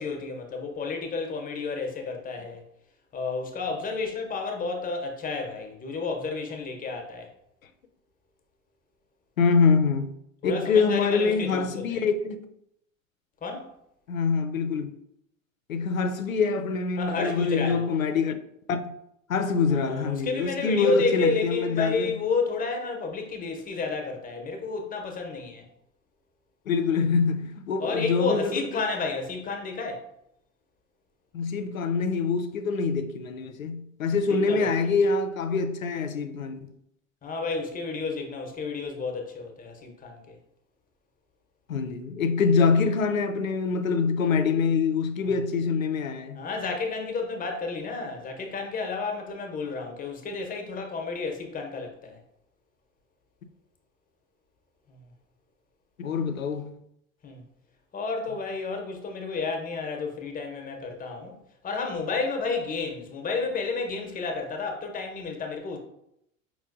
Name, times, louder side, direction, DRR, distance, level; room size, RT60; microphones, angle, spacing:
voice 1, 0.0-2.6 3.1-7.3 10.4-12.0 13.4-13.7 17.0-17.9 19.7-25.6 27.8-30.1 34.3-34.7 37.2-40.4 45.2-45.4 46.3-52.2 54.9-55.0 57.2-57.4 57.9-61.3 61.6-65.8, left 4 dB, 20° left, 0.9 m, -31 dB
voice 2, 9.4-10.1 10.4-12.4 14.1-14.9 15.7-18.3 18.7-18.9 19.3-22.1 26.7-28.6 31.3-36.7 41.7-46.4 56.0-56.7, left 5 dB, 85° left, 0.5 m, -25 dB
5.2 x 3.0 x 2.5 m
figure-of-eight pair, 75°, 40 cm